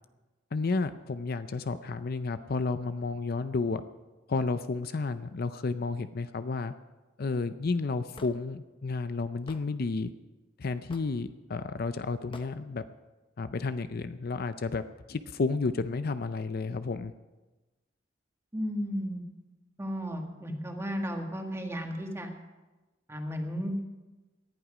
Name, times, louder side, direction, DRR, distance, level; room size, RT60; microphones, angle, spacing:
voice 1, 0.5-3.8 4.3-6.7 7.2-10.1 10.6-12.8 13.4-14.8 15.1-17.1, left 3 dB, 55° left, 11 dB, 0.5 m, -31 dB
Hammer / Wood, 8.2-8.4 9.5-9.6 10.9-11.2 12.3-12.5, left 2 dB, 25° left, 0.9 m, -46 dB
voice 2, 18.5-19.2 19.8-22.3 23.1-23.7, equal, 15° right, 2 dB, 1.8 m, -34 dB
18.5 x 11.0 x 5.0 m, 1.1 s
head